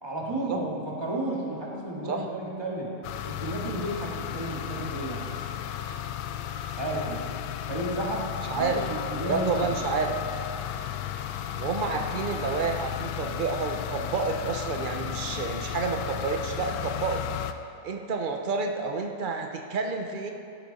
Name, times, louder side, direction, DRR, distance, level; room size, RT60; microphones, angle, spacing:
voice 1, 0.0-3.0 3.2-5.3 6.8-7.2 7.7-9.8, right 1 dB, 15° right, -4 dB, 1.9 m, -32 dB
sound 1, 3.0-17.5, left 10 dB, 85° left, 1.2 m, -34 dB
voice 2, 8.5-8.8 9.3-10.1 11.5-17.2 17.8-20.3, right 4 dB, 90° right, 4 dB, 0.4 m, -29 dB
16.5 x 8.5 x 4.1 m, 2.6 s
omnidirectional pair, 1.8 m